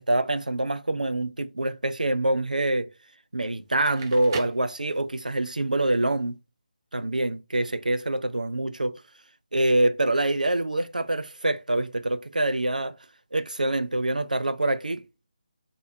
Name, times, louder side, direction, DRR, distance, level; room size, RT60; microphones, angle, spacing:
voice 1, 0.0-2.9 3.3-6.4 6.9-9.0 9.5-13.0 13.3-15.0, right 1 dB, 85° right, 0.4 m, -25 dB
Crackle, 3.7-5.4, right 6 dB, 30° right, 0.6 m, -39 dB
3.4 x 2.6 x 2.6 m
figure-of-eight pair, 155°, 4 cm